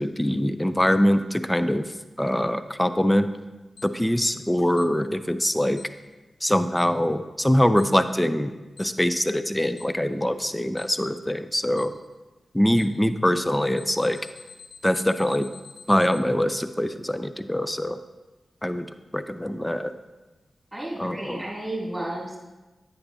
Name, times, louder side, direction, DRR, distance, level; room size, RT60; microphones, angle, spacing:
voice 1, 0.0-1.9 2.2-3.3 3.8-5.8 6.4-8.5 8.8-12.0 12.5-14.2 14.8-15.5 15.9-18.0 18.6-18.9 19.1-19.9 21.0-21.4, equal, 10° left, 11 dB, 0.5 m, -23 dB
Alarm, 3.8-3.9 4.8-4.9 5.8-5.9 6.8-6.9 7.8-7.9 8.8-8.9 9.8-9.9 10.8-10.9 11.8-11.9 12.8-12.9 13.8-16.2, left 6 dB, 85° left, 1.0 m, -46 dB
voice 2, 19.3-19.8 20.7-22.4, right 1 dB, 20° right, -4 dB, 2.7 m, -33 dB
9.9 x 9.1 x 2.7 m, 1.1 s
cardioid pair, 45°, 0 cm